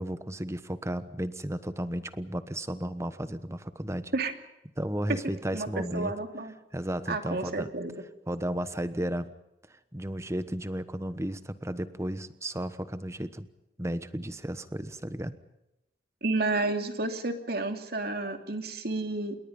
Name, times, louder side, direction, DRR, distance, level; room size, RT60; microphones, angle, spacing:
voice 1, 0.0-4.1 4.8-6.1 6.7-7.7 8.3-9.3 9.9-13.5 13.8-15.3, right 1 dB, 15° right, 12 dB, 1.2 m, -33 dB
voice 2, 5.5-6.5 7.1-7.9 16.2-19.4, right 2 dB, 60° right, 6 dB, 2.8 m, -31 dB
28.0 x 22.0 x 5.5 m, 0.89 s
head